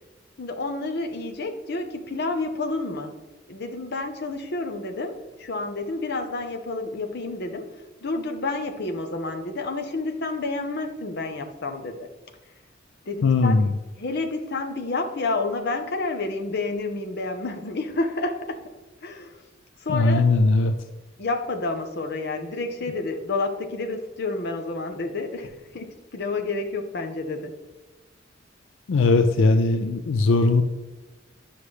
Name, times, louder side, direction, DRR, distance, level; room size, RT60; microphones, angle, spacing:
voice 1, 0.4-3.2 3.5-7.7 8.0-12.1 13.1-13.6 14.0-18.6 19.0-19.4 19.8-20.3 21.2-27.5, left 3 dB, 60° left, 5 dB, 0.8 m, -29 dB
voice 2, 13.2-13.7 19.9-20.7 28.9-30.6, left 3 dB, 90° left, 7 dB, 0.4 m, -19 dB
9.5 x 5.7 x 3.2 m, 1.2 s
head